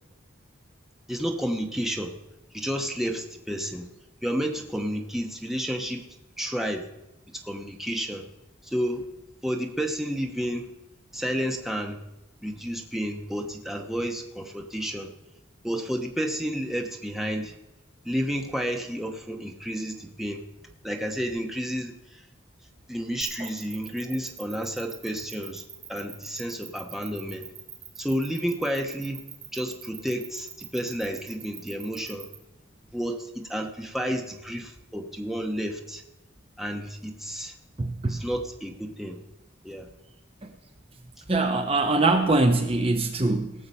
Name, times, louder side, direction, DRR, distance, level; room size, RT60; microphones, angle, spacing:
voice 1, 1.1-2.1 2.5-3.9 4.2-6.1 6.4-6.8 7.3-8.3 8.6-9.0 9.4-10.7 11.1-12.0 12.4-15.1 15.6-17.6 18.0-20.4 20.8-22.3 22.9-25.6 25.9-27.5 28.0-29.2 29.5-32.3 32.9-36.0 36.6-37.6 38.1-39.2 39.6-39.9 41.2-41.3, equal, ahead, 2 dB, 1.0 m, -31 dB
sound 1, 23.2-32.3, right 9 dB, 70° right, 1.9 m, -42 dB
voice 2, 37.8-38.2 40.4-40.5 41.3-43.5, right 2 dB, 30° right, 6 dB, 0.8 m, -23 dB
18.0 x 6.9 x 5.5 m, 0.94 s
head